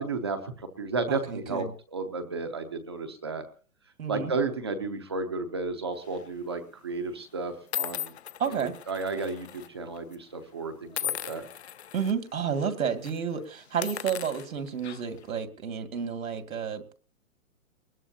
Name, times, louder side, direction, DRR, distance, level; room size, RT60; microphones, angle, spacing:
voice 1, 0.0-1.7 1.9-3.5 4.1-8.1 8.5-11.5, right 4 dB, 20° right, 6 dB, 0.7 m, -33 dB
voice 2, 1.1-1.7 4.0-4.4 8.4-8.8 11.9-16.9, right 7 dB, 80° right, 8 dB, 2.5 m, -31 dB
sound 1, 6.0-6.3 7.1-7.2 7.7-9.7 9.9-10.1 10.9-12.1 12.5-12.7 13.0-13.2 13.7-15.2, left 10 dB, 50° left, 0.7 m, -37 dB
22.5 x 20.5 x 2.8 m, 0.40 s
hypercardioid pair, 180°, 41 cm